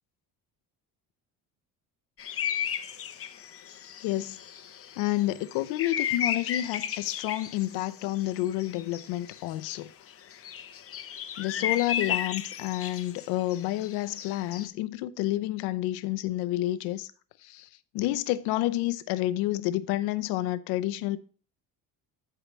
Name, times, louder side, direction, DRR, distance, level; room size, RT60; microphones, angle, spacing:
sound 1, 2.2-9.8 10.1-14.7, left 9 dB, 40° left, 0.8 m, -34 dB
voice 1, 4.0-4.4 5.0-9.9 11.4-17.1 17.5-17.7 17.9-21.2, left 15 dB, 85° left, 0.7 m, -29 dB
13.0 x 4.9 x 3.2 m
cardioid pair, 115°, 37 cm